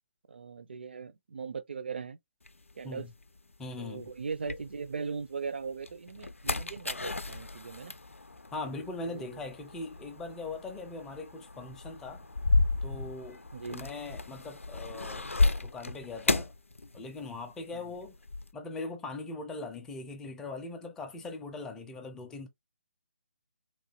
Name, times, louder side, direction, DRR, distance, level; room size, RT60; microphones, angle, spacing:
voice 1, 0.3-2.2 2.8-3.1 3.8-7.9 9.0-9.4 13.5-13.9 17.7-17.9, right 5 dB, 55° right, 0.4 m, -39 dB
sound 1, 2.5-5.2 5.7-17.4 17.7-18.5, left 3 dB, 80° left, 0.4 m, -33 dB
voice 2, 3.6-4.1 8.5-12.3 12.8-13.4 13.7-15.3 15.6-16.5 16.9-18.2 18.5-22.5, left 3 dB, 5° left, 0.4 m, -40 dB
3.0 x 2.3 x 2.8 m
figure-of-eight pair, 145°, 7 cm